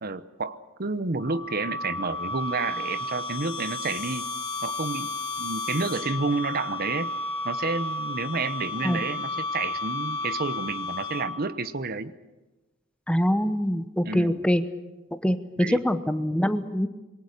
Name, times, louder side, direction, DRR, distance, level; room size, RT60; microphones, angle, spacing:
voice 1, 0.0-4.3 4.6-5.1 5.4-7.1 7.4-12.1 14.0-14.5 15.6-15.8, right 3 dB, 50° right, 13 dB, 0.9 m, -30 dB
sound 1, 1.2-11.6, left 2 dB, 25° left, 2.2 m, -32 dB
voice 2, 13.1-14.6 15.2-16.9, equal, 5° left, 10 dB, 1.0 m, -24 dB
27.0 x 22.5 x 6.7 m, 1.1 s
head